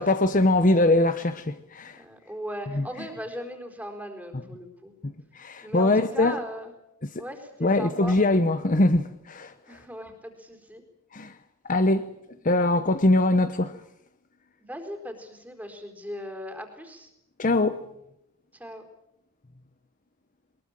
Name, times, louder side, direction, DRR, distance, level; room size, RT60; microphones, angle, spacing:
voice 1, 0.0-2.0 2.7-2.9 5.0-6.4 7.0-7.1 7.6-9.5 11.1-11.4 11.7-12.1 12.4-13.8 17.4-17.8, left 2 dB, 35° left, 0.8 m, -22 dB
voice 2, 2.0-4.9 5.6-6.7 7.2-8.2 9.7-10.8 14.6-17.1 18.6-18.8, equal, 5° right, 4.2 m, -38 dB
22.5 x 21.0 x 8.9 m
head